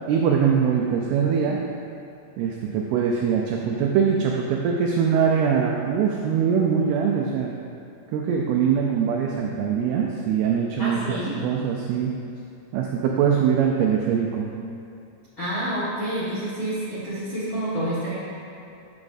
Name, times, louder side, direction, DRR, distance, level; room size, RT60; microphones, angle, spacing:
voice 1, 0.1-1.6 2.4-7.5 8.1-12.2 12.7-14.5, right 7 dB, 85° right, -1 dB, 2.2 m, -22 dB
voice 2, 10.8-11.3 15.4-18.1, right 1 dB, 80° left, -12 dB, 1.1 m, -28 dB
11.0 x 7.0 x 2.6 m, 2.6 s
omnidirectional pair, 5.1 m